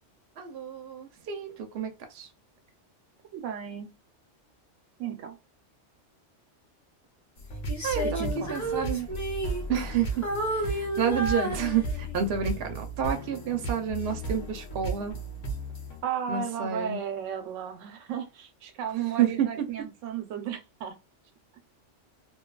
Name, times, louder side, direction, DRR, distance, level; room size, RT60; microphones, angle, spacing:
voice 1, 0.4-2.3 7.8-9.1 9.7-10.3 10.5-15.2 16.3-17.0 19.2-19.7, right 8 dB, 65° right, 0.7 m, -29 dB
voice 2, 3.3-3.9 5.0-5.4 8.0-8.9 16.0-20.9, right 8 dB, 90° right, 1.0 m, -34 dB
sound 1, 7.4-16.0, right 2 dB, 80° left, 1.2 m, -35 dB
Female singing, 7.7-10.0 10.2-12.3 12.8-13.0, right 1 dB, 20° left, 0.6 m, -32 dB
2.8 x 2.3 x 2.2 m
omnidirectional pair, 1.3 m